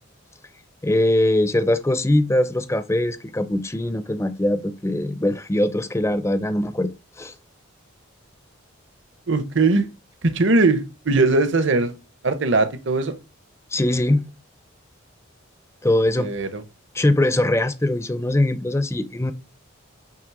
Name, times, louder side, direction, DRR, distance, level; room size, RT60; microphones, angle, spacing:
voice 1, 0.8-6.9 7.2-7.3 13.7-14.3 15.8-16.3 17.0-19.3, left 1 dB, 15° left, 0.5 m, -21 dB
voice 2, 9.3-9.9 10.2-11.9 12.2-13.2 16.2-16.6, right 3 dB, 55° right, 0.8 m, -20 dB
8.7 x 3.3 x 4.7 m
head